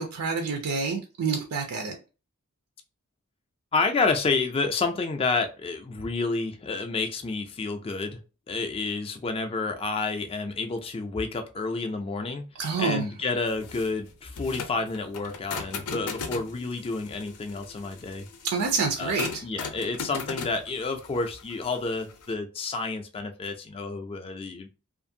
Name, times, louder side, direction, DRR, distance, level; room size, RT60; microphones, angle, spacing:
voice 1, 0.0-2.0 12.6-13.1 18.5-19.5, right 4 dB, 80° right, 3 dB, 0.4 m, -28 dB
voice 2, 3.7-8.2 8.5-12.4 12.8-18.3 19.0-19.1 19.4-24.7, left 3 dB, 25° left, 6 dB, 0.3 m, -29 dB
sound 1, 13.5-22.3, left 5 dB, 85° left, 0.5 m, -38 dB
2.5 x 2.4 x 2.6 m, 0.32 s
head